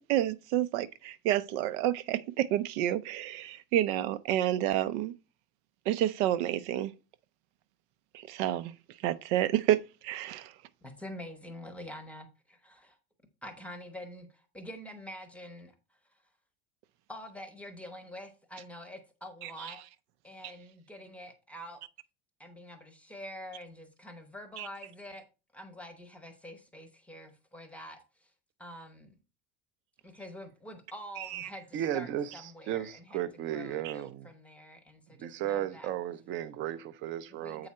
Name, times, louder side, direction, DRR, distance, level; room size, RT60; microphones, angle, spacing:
voice 1, 0.1-5.1 5.9-6.9 8.3-8.7 9.0-10.5 24.6-24.7 31.3-31.5 33.8-33.9, right 12 dB, 90° right, 0.7 m, -29 dB
voice 2, 10.8-13.0 13.4-15.7 16.1-16.2 17.1-19.8 20.2-21.8 22.4-25.2 25.5-28.3 28.6-29.1 30.0-35.9 37.3-37.7, equal, 5° left, 0.8 m, -46 dB
voice 3, 31.7-32.3 32.7-34.3 35.2-37.7, right 11 dB, 35° right, 0.5 m, -34 dB
7.8 x 4.8 x 4.2 m
cardioid pair, 175°, 34 cm